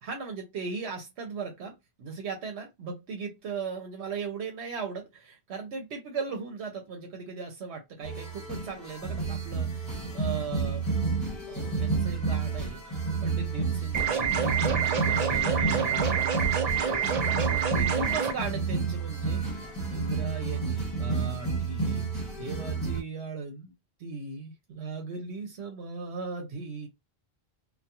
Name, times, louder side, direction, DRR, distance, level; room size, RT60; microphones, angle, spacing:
voice 1, 0.0-10.9 11.5-14.6 15.0-16.3 17.4-23.7 24.0-26.9, right 4 dB, 80° right, 0.9 m, -38 dB
sound 1, 8.0-23.0, right 4 dB, 20° left, 1.2 m, -30 dB
sound 2, 13.9-18.3, right 7 dB, 55° right, 0.5 m, -27 dB
2.3 x 2.2 x 2.8 m
omnidirectional pair, 1.1 m